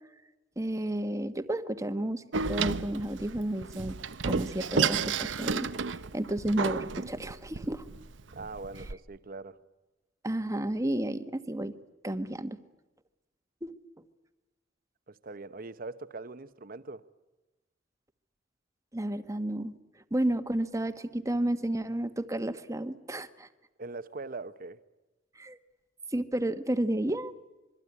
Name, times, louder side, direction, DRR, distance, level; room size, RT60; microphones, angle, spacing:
voice 1, 0.6-4.0 4.2-5.7 6.1-7.8 10.2-11.8 12.0-12.6 13.6-13.8 18.9-19.8 20.1-23.5 25.4-25.6 26.1-27.3, right 1 dB, 15° right, 1.3 m, -31 dB
Door, 2.3-8.9, right 5 dB, 80° right, 0.9 m, -32 dB
voice 2, 8.3-9.6 15.1-17.0 23.8-24.8, right 3 dB, 50° right, 0.9 m, -41 dB
26.0 x 23.0 x 9.8 m
head